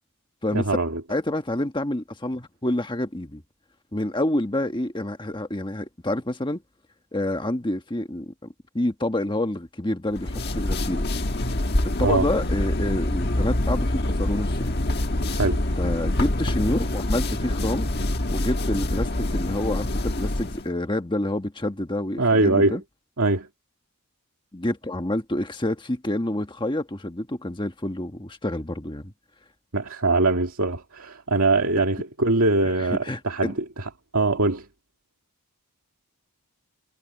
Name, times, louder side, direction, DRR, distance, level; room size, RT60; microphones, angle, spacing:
voice 1, 0.5-1.0 12.0-12.3 15.3-15.6 22.2-22.8 23.2-23.5 29.7-34.7, right 2 dB, 70° right, 2.3 m, -22 dB
voice 2, 1.1-3.4 3.9-6.6 7.1-8.3 8.7-11.1 12.0-14.7 15.8-17.9 18.3-22.8 24.5-29.1 32.8-33.6, left 1 dB, 20° left, 1.4 m, -28 dB
sound 1, 10.1-20.7, left 1 dB, 45° left, 1.5 m, -25 dB
head